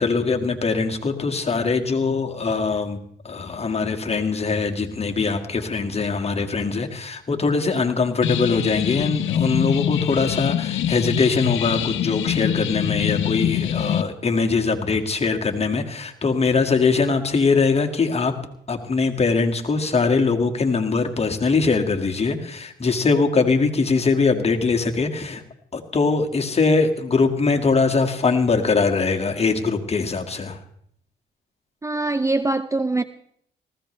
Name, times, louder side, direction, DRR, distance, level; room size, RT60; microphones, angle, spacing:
voice 1, 0.0-3.0 3.2-18.4 18.7-25.4 25.7-30.6, left 4 dB, 30° left, 2.0 m, -22 dB
sound 1, 8.2-14.0, left 10 dB, 75° left, 0.8 m, -24 dB
voice 2, 31.8-33.0, right 2 dB, 15° right, 0.5 m, -23 dB
19.0 x 16.0 x 3.3 m
cardioid pair, 90°, 20 cm